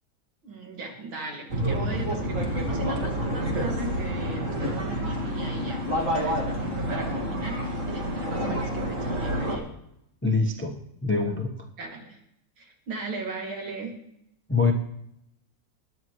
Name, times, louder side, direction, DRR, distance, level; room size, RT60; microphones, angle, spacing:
voice 1, 0.4-9.7 11.8-12.2 12.6-14.0, right 3 dB, 75° right, 1 dB, 3.2 m, -38 dB
sound 1, 1.5-9.6, equal, 40° right, 2.4 m, -28 dB
voice 2, 10.2-11.6 14.5-14.7, left 4 dB, 15° left, 3 dB, 0.5 m, -24 dB
21.0 x 10.5 x 3.1 m, 0.78 s
omnidirectional pair, 2.3 m